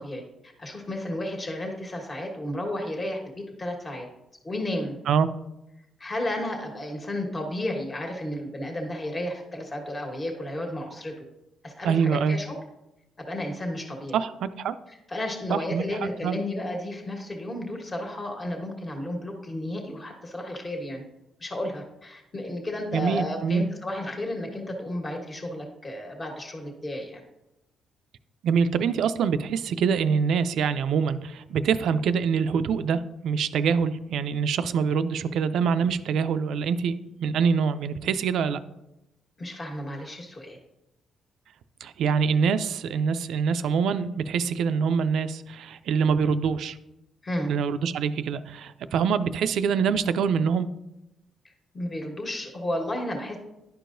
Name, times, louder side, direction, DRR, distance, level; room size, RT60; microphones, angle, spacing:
voice 1, 0.0-4.1 4.4-4.9 6.0-11.1 11.6-12.6 13.3-14.2 14.9-21.0 21.4-27.2 39.4-40.6 47.2-47.5 51.7-53.4, left 1 dB, 30° left, 1 dB, 1.4 m, -32 dB
voice 2, 11.8-12.4 14.1-14.7 15.5-15.8 16.2-16.4 22.9-23.6 28.4-38.6 41.8-46.8 47.5-50.7, right 6 dB, 75° right, 12 dB, 0.4 m, -25 dB
11.0 x 4.7 x 2.6 m, 0.92 s
cardioid pair, 70°, 0 cm